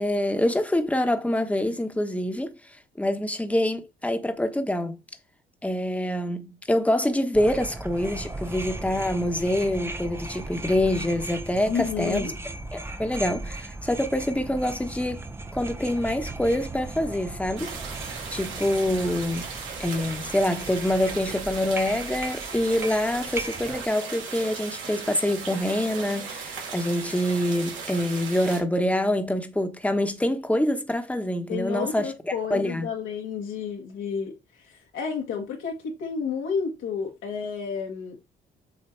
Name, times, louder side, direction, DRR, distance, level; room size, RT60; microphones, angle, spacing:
voice 1, 0.0-2.5 3.0-5.0 5.6-12.3 12.7-15.3 15.5-17.7 18.3-19.5 19.8-32.1 32.5-32.9, left 1 dB, 5° left, 1.1 m, -26 dB
sound 1, 7.3-23.9, right 2 dB, 10° right, 0.6 m, -37 dB
voice 2, 11.7-12.3 31.5-38.2, left 6 dB, 85° left, 1.8 m, -31 dB
sound 2, 17.6-28.6, right 5 dB, 80° right, 2.6 m, -37 dB
7.8 x 2.7 x 4.5 m
cardioid pair, 90°, 20 cm